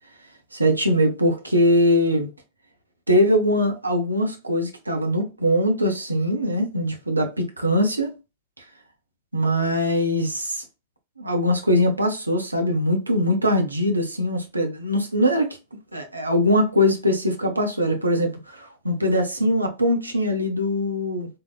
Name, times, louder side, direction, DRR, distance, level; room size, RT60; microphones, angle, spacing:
voice 1, 0.5-2.3 3.1-8.1 9.3-10.6 11.2-15.5 15.9-21.3, equal, 85° right, 0.5 m, -22 dB
3.6 x 2.0 x 2.2 m
figure-of-eight pair, 90°, 0 cm